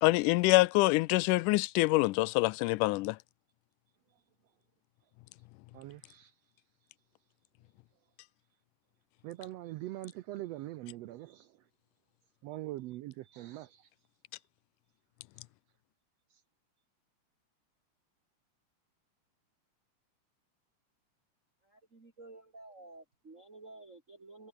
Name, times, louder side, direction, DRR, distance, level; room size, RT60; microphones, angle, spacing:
voice 1, 0.0-3.2, left 21 dB, 90° left, 2.1 m, -25 dB
voice 2, 5.7-6.3 9.2-11.6 12.4-13.9, right 16 dB, 85° right, 1.5 m, -43 dB
voice 3, 21.6-24.5, right 2 dB, 25° right, 3.2 m, -52 dB
omnidirectional pair, 3.6 m